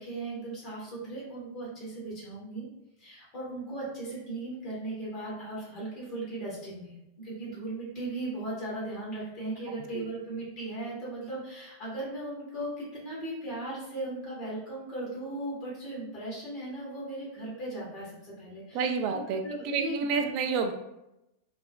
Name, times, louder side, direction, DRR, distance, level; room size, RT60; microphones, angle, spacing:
voice 1, 0.0-2.7 3.0-20.3, right 2 dB, 40° left, -6 dB, 1.1 m, -37 dB
voice 2, 18.7-20.7, right 5 dB, 45° right, 5 dB, 0.3 m, -29 dB
3.3 x 2.1 x 2.2 m, 0.90 s
figure-of-eight pair, 95°, 0 cm